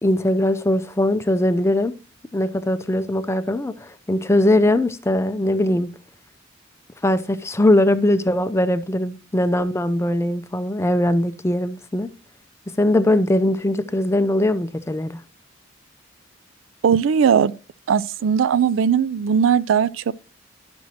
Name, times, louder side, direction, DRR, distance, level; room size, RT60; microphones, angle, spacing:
voice 1, 0.0-1.9 2.3-5.9 7.0-12.1 12.8-15.2, left 1 dB, 15° left, 0.4 m, -20 dB
voice 2, 16.8-17.5 17.9-20.1, right 7 dB, 85° right, 0.4 m, -18 dB
11.0 x 6.1 x 2.8 m
head